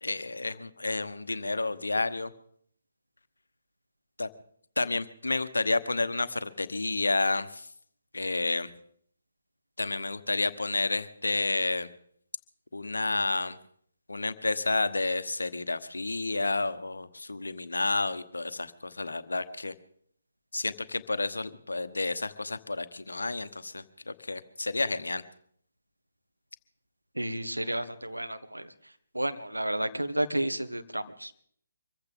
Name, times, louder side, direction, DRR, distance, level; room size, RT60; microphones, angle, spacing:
voice 1, 0.0-2.3 4.2-4.3 4.8-7.7 8.1-8.7 9.8-11.9 12.7-13.6 14.1-19.7 20.5-25.2, left 3 dB, 75° left, 12 dB, 1.1 m, -30 dB
voice 2, 27.2-28.6 29.1-31.4, right 1 dB, 90° right, 9 dB, 1.3 m, -31 dB
24.5 x 15.0 x 3.7 m, 0.63 s
figure-of-eight pair, 140°, 0 cm